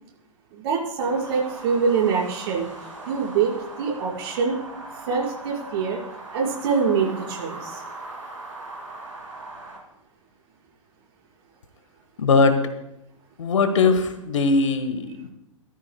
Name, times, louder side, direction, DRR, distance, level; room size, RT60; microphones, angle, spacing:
voice 1, 0.5-2.7 3.1-3.5 3.8-4.6 5.1-6.0 6.3-7.8, right 5 dB, 50° right, -3 dB, 5.6 m, -24 dB
sound 1, 1.0-9.8, right 2 dB, 90° right, 4.8 m, -39 dB
voice 2, 12.2-12.6 13.4-15.3, left 4 dB, 70° left, 8 dB, 1.6 m, -20 dB
18.5 x 13.5 x 2.3 m, 0.87 s
figure-of-eight pair, 105°, 17 cm